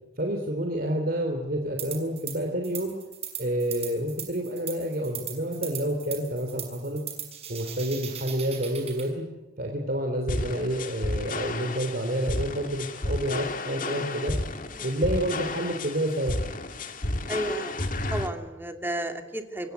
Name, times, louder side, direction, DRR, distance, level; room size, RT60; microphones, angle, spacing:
voice 1, 0.2-3.0 3.4-7.0 7.5-9.2 9.6-14.3 14.8-16.4, right 1 dB, 50° right, 3 dB, 3.1 m, -29 dB
sound 1, 1.8-2.4 2.6-9.1, right 9 dB, 35° right, 6.1 m, -38 dB
sound 2, 10.3-18.3, left 2 dB, 45° left, 2.4 m, -32 dB
voice 2, 17.3-17.7 18.1-19.7, right 1 dB, 10° right, 5 dB, 2.6 m, -32 dB
26.5 x 22.5 x 9.2 m, 1.0 s
head